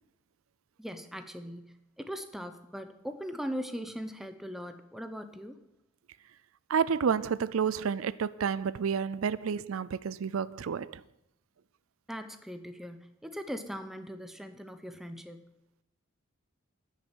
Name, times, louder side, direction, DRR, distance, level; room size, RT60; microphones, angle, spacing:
voice 1, 0.8-5.6 12.1-15.5, equal, ahead, 0.7 m, -40 dB
voice 2, 6.7-11.0, right 6 dB, 85° right, 0.4 m, -30 dB
10.5 x 6.5 x 9.0 m
head